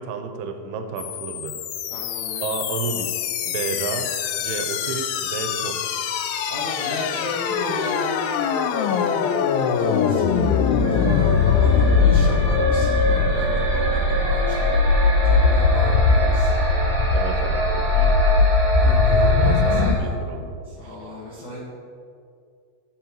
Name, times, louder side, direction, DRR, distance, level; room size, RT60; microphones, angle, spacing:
voice 1, 0.0-1.5 2.4-4.1 4.4-5.8 17.1-18.2 19.3-20.6 20.8-20.9, right 5 dB, 85° right, 5 dB, 2.6 m, -31 dB
sound 1, 1.0-20.0, left 5 dB, 90° left, 2.0 m, -21 dB
voice 2, 1.9-2.5 6.5-10.5 10.9-14.7 15.2-16.5 18.8-20.1 20.6-21.6, left 1 dB, 70° left, -7 dB, 1.2 m, -35 dB
sound 2, 10.4-19.9, right 2 dB, 15° right, 0.9 m, -25 dB
13.0 x 7.6 x 3.0 m, 2.3 s
omnidirectional pair, 4.7 m